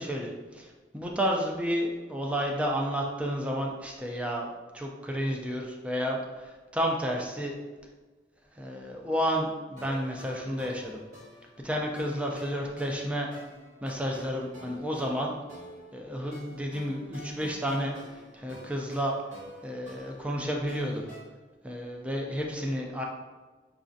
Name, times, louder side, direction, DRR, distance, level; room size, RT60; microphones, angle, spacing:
voice 1, 0.0-7.5 8.6-11.0 11.6-13.3 13.8-15.3 15.9-19.1 19.6-21.1 21.6-23.0, equal, 5° right, 0 dB, 0.3 m, -31 dB
sound 1, 9.8-21.2, equal, 45° right, 1.1 m, -46 dB
4.0 x 2.4 x 2.5 m, 1.3 s
head